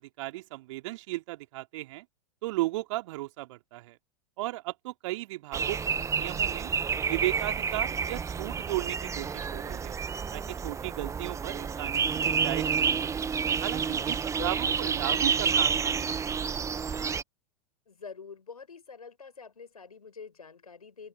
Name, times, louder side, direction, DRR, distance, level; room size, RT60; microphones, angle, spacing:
voice 1, 0.0-2.0 2.4-4.0 4.4-5.8 6.2-6.7 7.1-9.9 10.3-13.2 13.6-16.5, right 18 dB, 55° right, 3.0 m, -35 dB
sound 1, 5.5-17.2, right 6 dB, 15° right, 1.1 m, -29 dB
voice 2, 5.7-6.2 14.3-14.8 17.9-21.1, left 5 dB, 80° left, 6.9 m, -46 dB
open air
figure-of-eight pair, 95°, 19 cm